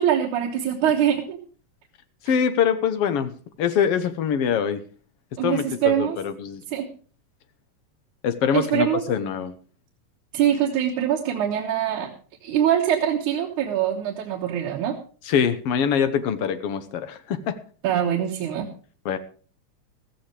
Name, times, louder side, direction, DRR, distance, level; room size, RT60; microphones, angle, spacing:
voice 1, 0.0-1.4 5.4-6.2 6.7-6.9 8.5-9.0 10.3-12.1 12.4-15.0 17.8-18.7, right 10 dB, 80° right, 0 dB, 2.7 m, -23 dB
voice 2, 2.2-3.3 3.6-4.8 5.4-6.6 8.2-9.5 15.2-17.6 19.0-19.2, left 7 dB, 65° left, 11 dB, 1.6 m, -24 dB
14.5 x 14.5 x 3.3 m, 0.39 s
omnidirectional pair, 3.5 m